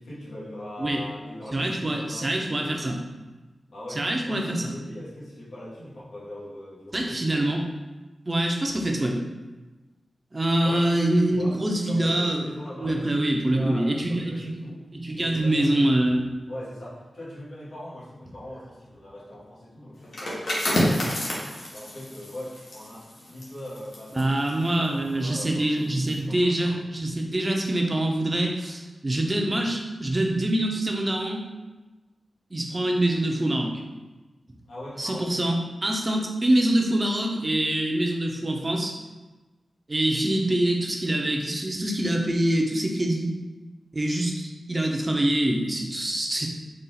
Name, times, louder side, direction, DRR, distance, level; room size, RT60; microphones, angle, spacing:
voice 1, 0.0-2.8 3.7-7.4 10.6-11.6 11.8-14.8 15.1-21.4 21.7-26.8 34.7-35.3, left 1 dB, 90° left, -8 dB, 1.4 m, -40 dB
voice 2, 1.5-3.0 3.9-4.7 6.9-7.6 8.3-9.2 10.3-12.4 12.8-14.6 15.0-16.2 24.2-31.5 32.5-33.8 35.0-39.0 39.9-43.3 43.9-46.5, right 1 dB, 25° right, 1 dB, 0.6 m, -25 dB
sound 1, 20.0-25.5 25.9-26.2, left 1 dB, 75° left, 1.0 m, -30 dB
4.1 x 2.4 x 3.9 m, 1.2 s
wide cardioid pair, 105°, 0 cm